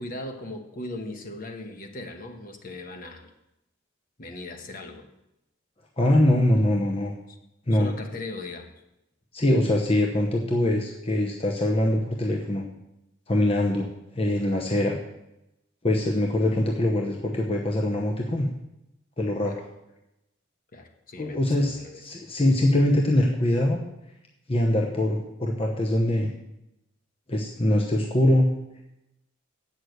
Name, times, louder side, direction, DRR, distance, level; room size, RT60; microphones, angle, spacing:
voice 1, 0.0-3.3 4.2-5.1 7.3-7.4 7.7-8.7 19.5-19.6 20.7-22.2, left 2 dB, 45° left, 5 dB, 1.2 m, -38 dB
voice 2, 6.0-7.1 7.7-7.9 9.3-12.6 13.3-15.0 15.8-18.5 19.2-19.7 21.2-23.8 24.5-26.3 27.3-28.5, left 1 dB, 30° left, 1 dB, 0.9 m, -23 dB
8.3 x 6.4 x 8.0 m, 0.88 s
head